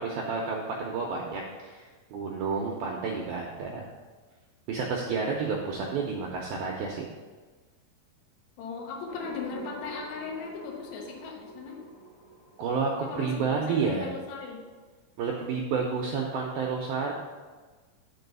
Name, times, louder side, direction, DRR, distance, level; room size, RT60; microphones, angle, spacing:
voice 1, 0.0-3.9 4.7-7.1 12.6-14.1 15.2-17.1, right 5 dB, 80° right, -1 dB, 2.2 m, -30 dB
voice 2, 8.6-11.8 13.0-14.6, left 5 dB, 75° left, -1 dB, 3.2 m, -38 dB
sound 1, 9.1-14.9, right 2 dB, 35° left, 2.2 m, -48 dB
7.1 x 4.6 x 6.8 m, 1.4 s
omnidirectional pair, 5.1 m